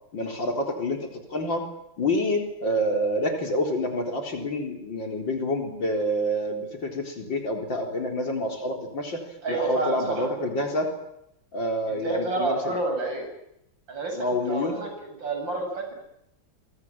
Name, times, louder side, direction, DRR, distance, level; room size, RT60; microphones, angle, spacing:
voice 1, 0.1-1.6 2.0-9.2 9.5-10.9 11.5-12.8 14.1-14.7, left 1 dB, 65° left, 3 dB, 4.8 m, -27 dB
voice 2, 9.4-10.3 11.9-13.3 13.9-15.9, right 2 dB, 65° right, 3 dB, 9.0 m, -29 dB
27.5 x 25.0 x 7.4 m, 0.80 s
omnidirectional pair, 2.2 m